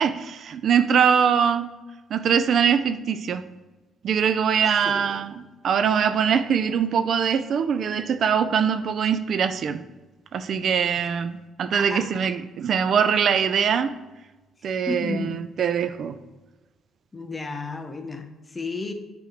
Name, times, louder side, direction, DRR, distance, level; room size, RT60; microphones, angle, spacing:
voice 1, 0.0-1.7 2.1-3.4 4.0-9.8 10.3-13.9 14.6-16.2, right 7 dB, 55° right, 11 dB, 0.3 m, -22 dB
voice 2, 11.7-12.1 14.9-15.4 17.1-18.9, left 3 dB, 20° left, 7 dB, 0.7 m, -32 dB
8.3 x 3.0 x 5.0 m, 1.2 s
cardioid pair, 120°, 0 cm